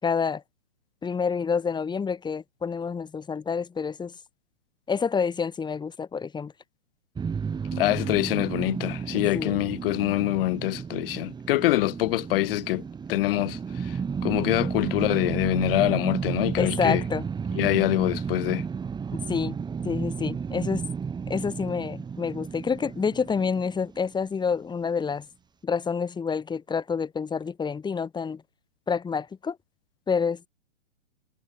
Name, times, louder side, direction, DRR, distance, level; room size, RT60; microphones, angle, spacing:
voice 1, 0.0-0.4 1.0-4.1 4.9-6.5 9.3-9.6 14.6-14.7 16.6-17.3 19.3-19.6 19.8-20.8 21.3-25.2 25.6-28.4 28.9-29.6 30.1-30.5, left 5 dB, 10° left, 6.6 m, -28 dB
sound 1, 7.1-24.3, right 6 dB, 10° right, 2.6 m, -32 dB
voice 2, 7.7-12.8 13.1-17.0 17.5-18.6, left 17 dB, 50° left, 5.1 m, -25 dB
hypercardioid pair, 130°, 36 cm